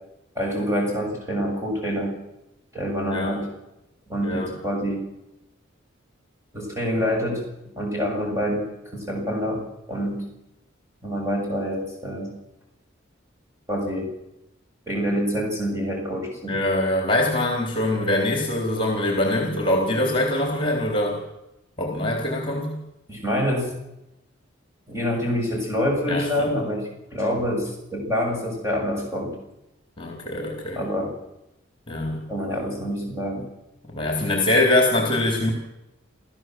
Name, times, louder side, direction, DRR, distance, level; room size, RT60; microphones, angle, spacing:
voice 1, 0.4-2.2 2.7-3.5 4.1-5.1 6.5-7.4 7.8-10.2 11.0-12.3 13.7-14.1 14.9-16.6 23.1-23.7 24.9-29.4 30.8-31.2 32.3-33.4, equal, 15° right, -2 dB, 7.3 m, -26 dB
voice 2, 16.5-21.2 21.8-22.8 26.1-26.5 30.0-30.9 31.9-32.3 33.8-35.5, left 1 dB, 25° left, 2 dB, 3.7 m, -23 dB
28.0 x 15.0 x 7.7 m, 0.91 s
head